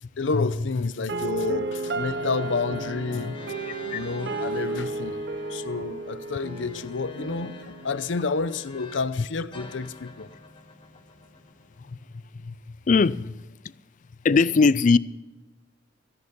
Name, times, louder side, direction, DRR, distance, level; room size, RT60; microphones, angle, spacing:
voice 1, 0.2-3.4 3.9-5.2 5.5-10.3, left 4 dB, 85° left, 0.7 m, -30 dB
sound 1, 1.1-9.1, right 3 dB, 65° right, 0.8 m, -33 dB
sound 2, 1.8-9.2 9.5-11.9, left 3 dB, 30° left, 2.1 m, -46 dB
voice 2, 12.9-13.3 14.2-15.0, left 4 dB, 45° left, 0.4 m, -20 dB
15.5 x 11.0 x 5.4 m
head